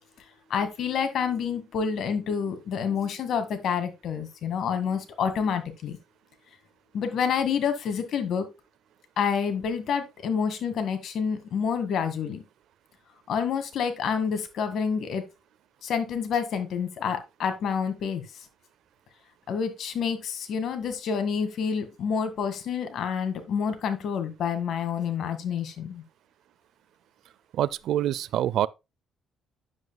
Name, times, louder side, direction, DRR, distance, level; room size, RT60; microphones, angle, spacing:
voice 1, 0.5-6.0 6.9-8.5 9.2-12.4 13.3-15.2 15.8-18.2 19.5-26.0, left 7 dB, 65° left, 1.7 m, -28 dB
voice 2, 27.5-28.7, right 11 dB, 70° right, 0.4 m, -25 dB
9.6 x 7.6 x 2.2 m
cardioid pair, 105°, 0 cm